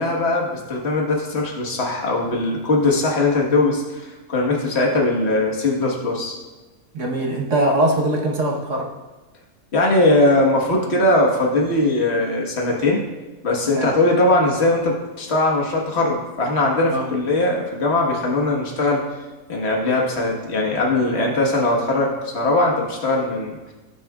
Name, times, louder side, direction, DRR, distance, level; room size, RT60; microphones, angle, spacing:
voice 1, 0.0-6.3 9.7-13.0 13.4-19.1 19.5-23.7, left 2 dB, 45° left, -1 dB, 1.7 m, -20 dB
voice 2, 6.9-8.9 13.7-13.9 16.9-17.1, right 1 dB, 50° right, -1 dB, 1.5 m, -21 dB
17.0 x 6.7 x 2.4 m, 1.2 s
omnidirectional pair, 1.7 m